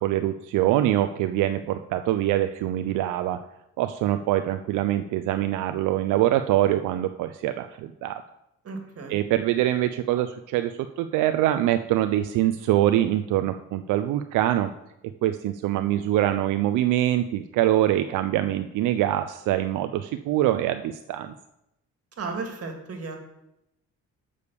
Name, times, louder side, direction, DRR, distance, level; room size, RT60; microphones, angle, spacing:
voice 1, 0.0-3.4 3.8-8.2 9.1-14.7 15.2-21.3, right 13 dB, 90° right, 9 dB, 0.5 m, -24 dB
voice 2, 8.6-9.2 22.2-23.2, right 4 dB, 50° right, 4 dB, 1.8 m, -34 dB
6.9 x 4.9 x 6.8 m, 0.85 s
cardioid pair, 90°, 30 cm